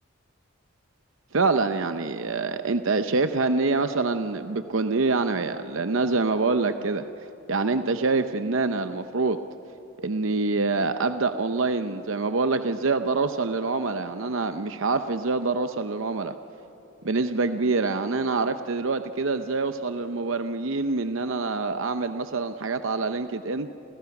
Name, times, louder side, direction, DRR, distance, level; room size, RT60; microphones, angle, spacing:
voice 1, 1.3-7.0 7.5-9.4 10.0-16.3 17.0-23.7, right 3 dB, 65° right, 9 dB, 0.7 m, -25 dB
29.5 x 28.5 x 6.0 m, 3.0 s
head